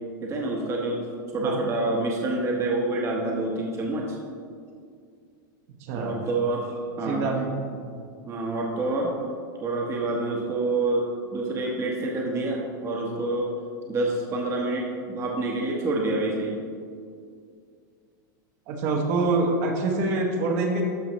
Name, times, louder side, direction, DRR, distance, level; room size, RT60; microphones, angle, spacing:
voice 1, 0.2-1.0 1.3-4.2 5.9-7.3 8.2-9.1 9.6-13.5 13.9-16.6, right 2 dB, 25° right, -1 dB, 1.0 m, -27 dB
voice 2, 5.8-6.2 7.0-7.5 7.7-8.1 18.7-20.8, right 3 dB, 55° right, 1 dB, 1.2 m, -26 dB
13.0 x 4.9 x 3.1 m, 2.2 s
supercardioid pair, 135°, 11 cm